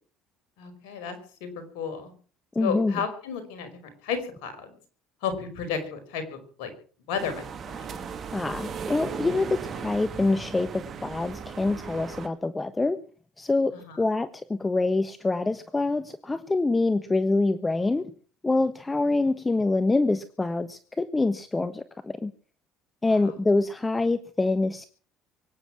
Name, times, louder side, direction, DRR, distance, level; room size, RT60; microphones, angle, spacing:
voice 1, 0.6-1.5 1.7-2.1 2.6-3.7 4.0-4.7 5.2-6.7 7.1-8.0 13.9-14.0 23.1-23.3, left 6 dB, 75° left, 8 dB, 5.2 m, -33 dB
voice 2, 2.5-2.9 8.3-13.0 13.4-18.1 18.4-22.3 23.0-24.9, left 3 dB, 20° left, 12 dB, 1.3 m, -25 dB
sound 1, 7.2-12.3, right 6 dB, 45° right, 2.3 m, -37 dB
24.0 x 9.8 x 6.1 m, 0.42 s
hypercardioid pair, 70°, 0 cm